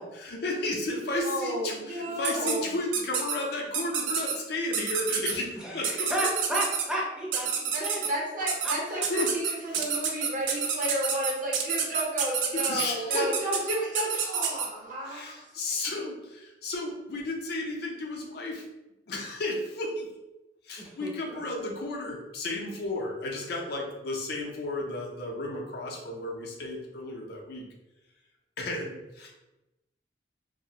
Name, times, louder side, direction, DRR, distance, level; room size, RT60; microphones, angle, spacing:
voice 1, 0.1-6.1 8.9-9.3 9.6-9.8 12.5-13.4 15.1-18.6 19.1-20.1 20.6-27.6 28.6-29.3, left 2 dB, 60° left, -1 dB, 0.5 m, -33 dB
voice 2, 1.2-2.7 7.7-15.4, right 1 dB, 45° right, -3 dB, 0.8 m, -32 dB
sound 1, 2.2-2.6 2.9-3.4 3.7-4.3 4.7-5.3 5.8-6.9 7.3-8.1 8.5-8.8 9.0-14.7, right 7 dB, 85° right, 0.4 m, -28 dB
voice 3, 5.6-8.0 8.6-8.7 20.8-21.4, right 1 dB, 5° right, -5 dB, 0.5 m, -33 dB
2.3 x 2.0 x 2.8 m, 0.99 s
head